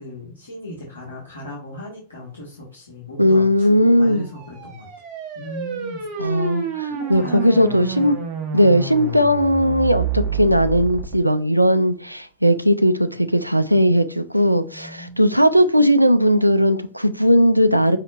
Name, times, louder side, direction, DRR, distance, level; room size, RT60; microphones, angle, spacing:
voice 1, 0.0-4.9 5.3-6.0 6.9-8.1 14.6-15.2, left 1 dB, 75° left, 1.3 m, -37 dB
voice 2, 3.2-4.3 6.2-8.2 8.5-18.0, equal, 90° right, 0.3 m, -17 dB
sound 1, 4.2-11.2, right 5 dB, 35° right, 1.0 m, -29 dB
5.7 x 2.8 x 2.4 m
figure-of-eight pair, 90°, 0 cm